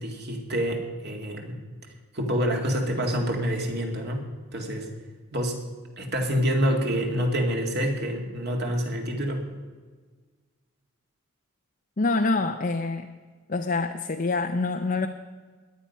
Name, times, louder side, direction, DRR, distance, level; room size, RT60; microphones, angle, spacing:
voice 1, 0.0-1.6 2.1-4.2 4.5-4.9 5.3-5.6 6.0-9.4, equal, 50° right, 3 dB, 2.1 m, -27 dB
voice 2, 12.0-13.1 13.5-15.1, left 3 dB, 40° left, 4 dB, 0.6 m, -26 dB
17.5 x 10.5 x 5.5 m, 1.4 s
head